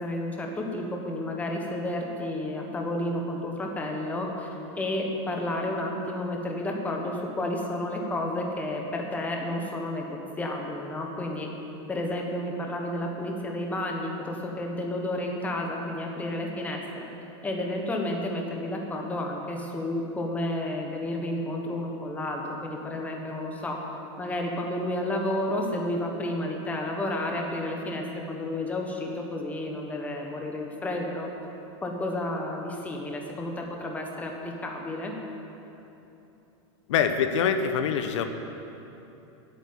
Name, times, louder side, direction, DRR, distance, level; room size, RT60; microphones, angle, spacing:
voice 1, 0.0-4.5 4.8-11.5 11.9-17.0 17.4-23.8 24.2-31.3 31.8-35.1, left 1 dB, 10° left, 1 dB, 1.3 m, -31 dB
voice 2, 36.9-38.2, left 7 dB, 85° left, 7 dB, 0.9 m, -24 dB
10.5 x 8.8 x 8.6 m, 3.0 s
supercardioid pair, 155°, 15 cm